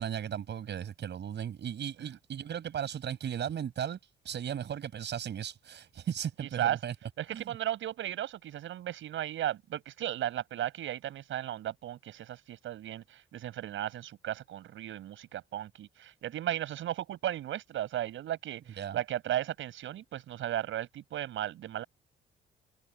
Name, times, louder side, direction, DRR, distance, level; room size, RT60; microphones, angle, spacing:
voice 1, 0.0-4.0 4.2-6.9 7.3-7.6 18.8-19.0, right 9 dB, 60° right, 7.5 m, -36 dB
voice 2, 6.4-6.8 7.2-21.8, right 12 dB, 80° right, 7.4 m, -35 dB
cardioid pair, 90°, 20 cm